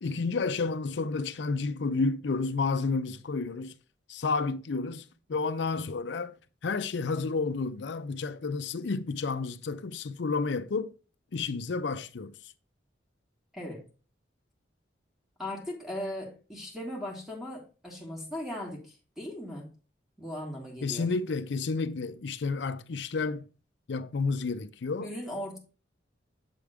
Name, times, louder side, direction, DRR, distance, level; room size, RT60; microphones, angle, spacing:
voice 1, 0.0-3.7 4.1-6.4 6.6-10.9 11.3-12.5 20.8-23.5 23.9-25.1, left 4 dB, 70° left, 0.5 m, -31 dB
voice 2, 13.5-13.8 15.4-19.7 20.2-21.1 25.0-25.6, left 1 dB, ahead, 1.6 m, -38 dB
7.6 x 3.5 x 4.7 m
head